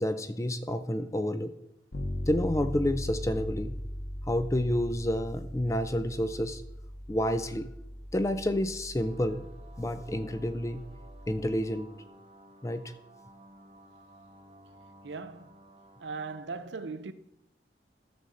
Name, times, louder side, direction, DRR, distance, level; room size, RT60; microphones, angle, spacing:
voice 1, 0.0-1.5 2.3-3.8 4.3-6.6 7.1-7.7 8.1-9.5 9.8-10.8 11.3-11.9 12.6-12.9, left 1 dB, 15° left, 0.4 m, -29 dB
Bass guitar, 1.9-11.7, equal, 60° left, 1.3 m, -39 dB
sound 1, 9.0-16.4, right 1 dB, 35° right, 0.8 m, -55 dB
voice 2, 15.0-15.6 16.0-17.1, right 4 dB, 90° right, 0.7 m, -39 dB
12.0 x 7.0 x 3.8 m
head